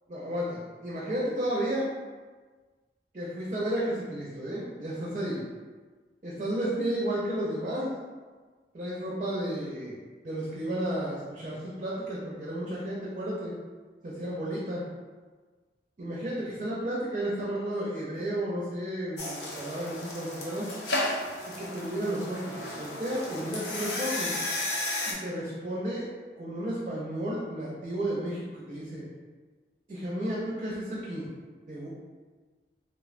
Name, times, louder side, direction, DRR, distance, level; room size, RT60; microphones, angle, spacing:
voice 1, 0.1-1.9 3.1-5.4 6.2-7.9 8.7-10.0 10.2-13.5 14.0-14.8 16.0-20.7 21.6-24.4 25.1-26.1 26.4-29.1 29.9-31.3 31.7-31.9, right 1 dB, 40° right, -6 dB, 0.5 m, -32 dB
sound 1, 19.2-25.1, left 1 dB, 75° left, 0.6 m, -33 dB
3.2 x 2.1 x 2.4 m, 1.4 s
head